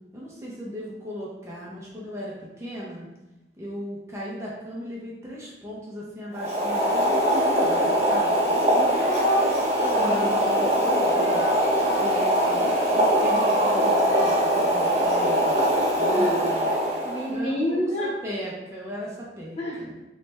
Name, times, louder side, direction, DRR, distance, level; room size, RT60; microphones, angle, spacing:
voice 1, 0.1-3.1 3.6-8.5 9.9-11.4 12.0-16.7 17.3-17.6 18.0-19.9, equal, 15° right, -5 dB, 0.6 m, -37 dB
Boiling, 6.3-17.3, equal, 40° right, 1.0 m, -22 dB
voice 2, 8.7-10.3 15.7-16.6 17.0-18.1 19.5-19.8, equal, 40° left, -6 dB, 1.2 m, -28 dB
3.1 x 3.1 x 3.3 m, 1.0 s
head